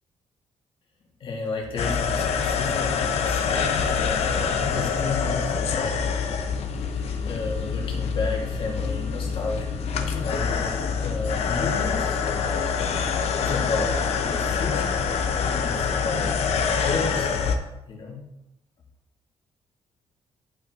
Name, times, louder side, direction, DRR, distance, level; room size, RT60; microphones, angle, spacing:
voice 1, 1.2-6.2 7.2-12.6 13.4-15.0 15.5-16.5 16.7-18.2, left 3 dB, 45° left, -2 dB, 2.2 m, -33 dB
sound 1, 1.8-17.6, left 6 dB, 65° left, 0.8 m, -25 dB
11.5 x 5.5 x 3.7 m, 0.92 s
cardioid pair, 165°, 12 cm